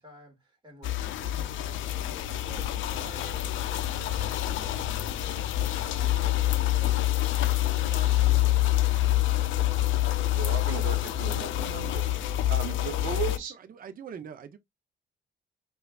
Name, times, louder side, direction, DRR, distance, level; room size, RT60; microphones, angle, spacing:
voice 1, 0.0-4.7 5.2-9.8, right 2 dB, 25° right, 1.9 m, -52 dB
sound 1, 0.8-13.4, left 14 dB, 75° left, 0.5 m, -27 dB
voice 2, 10.3-13.5, right 8 dB, 90° right, 1.0 m, -36 dB
voice 3, 13.1-14.6, right 7 dB, 45° right, 0.6 m, -44 dB
4.7 x 2.4 x 2.3 m
cardioid pair, 90°, 20 cm